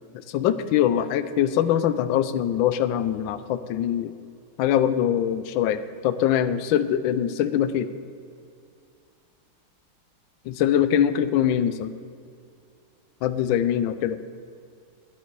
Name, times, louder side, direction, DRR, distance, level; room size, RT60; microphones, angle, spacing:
voice 1, 0.3-4.1 4.6-7.9 10.5-11.9 13.2-14.2, left 10 dB, 75° left, 12 dB, 1.2 m, -23 dB
13.5 x 9.8 x 4.6 m, 2.4 s
omnidirectional pair, 2.4 m